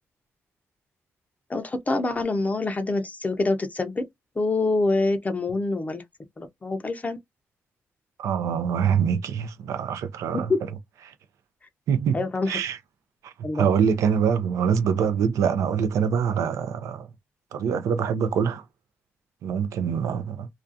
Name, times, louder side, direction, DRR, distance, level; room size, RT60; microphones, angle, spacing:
voice 1, 1.5-4.0 4.4-6.0 6.4-7.2 12.1-12.6 13.4-13.7, left 2 dB, 30° left, 0.5 m, -26 dB
voice 2, 8.2-10.5 11.1-11.2 11.9-12.8 13.2-17.1 17.5-18.6 19.4-20.5, right 7 dB, 90° right, 0.4 m, -24 dB
2.4 x 2.3 x 2.6 m
cardioid pair, 75°, 5 cm